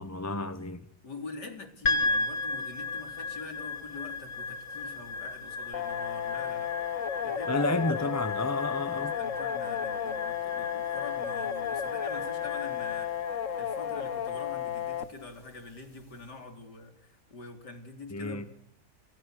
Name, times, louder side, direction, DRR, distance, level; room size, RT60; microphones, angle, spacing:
voice 1, 0.0-0.8 7.5-9.1 18.1-18.5, left 2 dB, 10° left, 1.1 m, -31 dB
voice 2, 1.0-6.7 7.2-8.2 9.0-13.1 13.6-18.5, left 3 dB, 90° left, 4.4 m, -45 dB
sound 1, 1.8-16.2, left 3 dB, 30° left, 2.8 m, -36 dB
sound 2, 5.7-15.1, left 9 dB, 50° left, 1.8 m, -33 dB
29.5 x 28.0 x 6.7 m
omnidirectional pair, 1.7 m